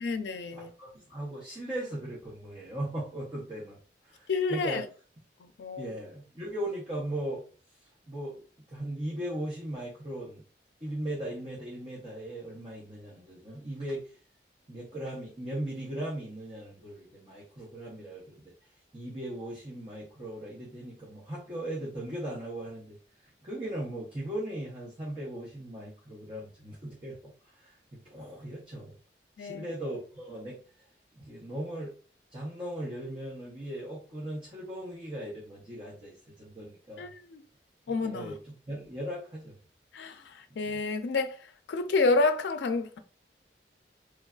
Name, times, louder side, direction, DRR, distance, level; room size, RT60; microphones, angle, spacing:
voice 1, 0.0-0.7 4.3-4.8 5.4-5.9 29.4-29.7 37.0-37.4 37.9-38.3 39.9-43.0, left 3 dB, 85° left, 0.4 m, -29 dB
voice 2, 0.5-3.8 4.0-4.8 5.8-7.4 7.8-8.4 8.7-10.4 10.8-14.1 14.7-18.4 18.9-23.0 23.4-29.0 29.4-30.6 31.1-31.9 32.3-37.1 37.9-39.6 40.7-40.8, right 1 dB, 30° right, 0.8 m, -38 dB
3.3 x 2.3 x 2.3 m
head